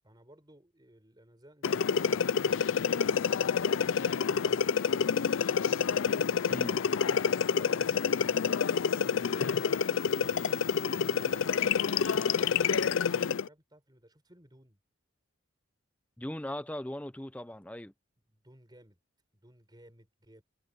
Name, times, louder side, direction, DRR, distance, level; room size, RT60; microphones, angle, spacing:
voice 1, 0.0-6.2 7.0-9.6 10.0-14.8 18.3-19.0 19.3-20.4, right 1 dB, 20° right, 4.7 m, -58 dB
ZX Spectrum Music, 1.6-13.5, left 6 dB, 70° left, 0.5 m, -28 dB
voice 2, 6.5-6.8 16.2-17.9, left 1 dB, 5° left, 0.6 m, -39 dB
head